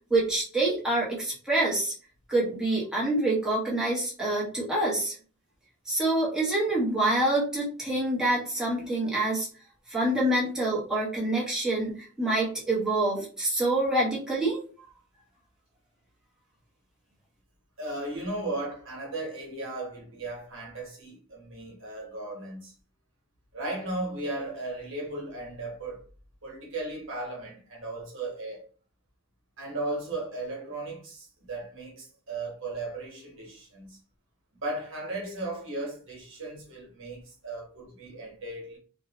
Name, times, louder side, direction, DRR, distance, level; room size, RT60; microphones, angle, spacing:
voice 1, 0.1-1.9 2.3-5.1 5.9-9.5 9.9-14.6, right 1 dB, 5° right, 0.8 m, -26 dB
voice 2, 17.8-22.7 23.5-26.0 26.4-28.7 29.6-34.0 34.6-38.8, right 2 dB, 65° right, 1.1 m, -36 dB
2.7 x 2.1 x 2.8 m
head